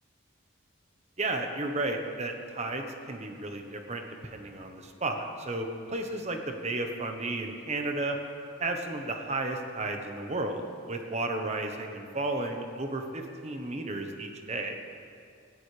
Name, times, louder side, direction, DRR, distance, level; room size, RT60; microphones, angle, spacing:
voice 1, 1.2-8.2 8.6-14.8, right 2 dB, 35° right, 4 dB, 1.1 m, -33 dB
17.5 x 14.0 x 3.3 m, 2.4 s
head